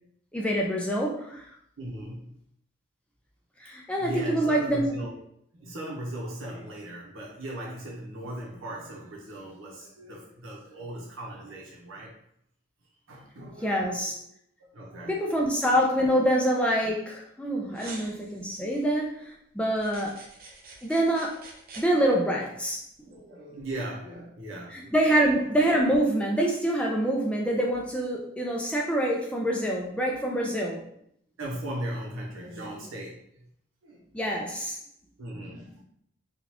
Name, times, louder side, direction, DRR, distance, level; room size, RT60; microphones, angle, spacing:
voice 1, 0.3-1.5 3.6-4.9 13.6-14.1 15.1-20.2 20.8-21.4 21.8-22.8 24.7-30.9 34.1-34.8, right 1 dB, 5° left, -2 dB, 0.4 m, -26 dB
voice 2, 1.8-2.3 3.9-5.2 5.6-12.1 13.1-14.2 14.6-15.2 16.0-16.2 17.7-18.0 23.0-25.0 30.5-30.6 31.4-33.5 33.8-34.0 35.2-35.8, right 1 dB, 80° right, -3 dB, 1.0 m, -38 dB
sound 1, 17.7-18.9 19.8-21.9, right 3 dB, 45° right, 0.7 m, -46 dB
3.8 x 2.4 x 2.9 m, 0.71 s
head